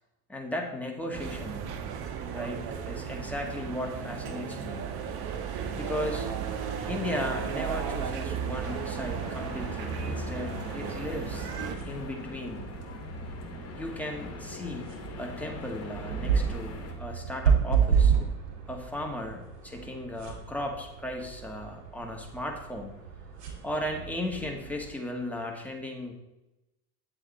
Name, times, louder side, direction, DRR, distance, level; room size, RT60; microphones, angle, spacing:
voice 1, 0.3-1.8 2.3-4.9 5.7-6.3 6.8-11.5 11.8-12.7 13.7-14.9 15.2-18.1 18.7-23.0 23.6-26.1, left 1 dB, 5° left, 1 dB, 1.9 m, -36 dB
sound 1, 1.1-11.8, right 7 dB, 50° right, 1.4 m, -34 dB
sound 2, 8.6-16.9, left 4 dB, 30° left, 2.4 m, -43 dB
sound 3, 11.3-24.9, right 7 dB, 80° right, 2.5 m, -31 dB
9.8 x 7.8 x 4.3 m, 0.96 s
hypercardioid pair, 75°, 47 cm